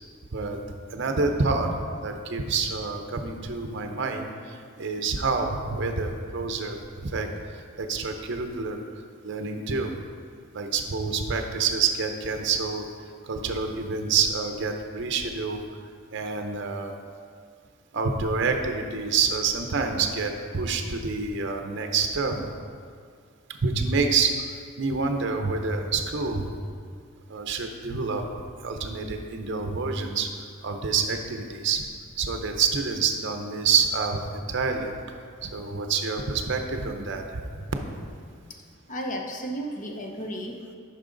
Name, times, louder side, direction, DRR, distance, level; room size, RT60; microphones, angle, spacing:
voice 1, 0.9-1.7 2.0-8.8 9.2-9.9 10.5-12.8 13.2-15.6 16.1-16.9 17.9-22.4 23.6-24.4 24.8-26.5 27.3-28.3 28.6-30.3 30.6-31.8 32.2-34.2 34.5-34.9 35.4-37.5, right 4 dB, 55° right, 5 dB, 0.6 m, -27 dB
voice 2, 38.9-40.7, equal, 35° left, 2 dB, 0.7 m, -34 dB
8.8 x 5.6 x 3.8 m, 2.1 s
head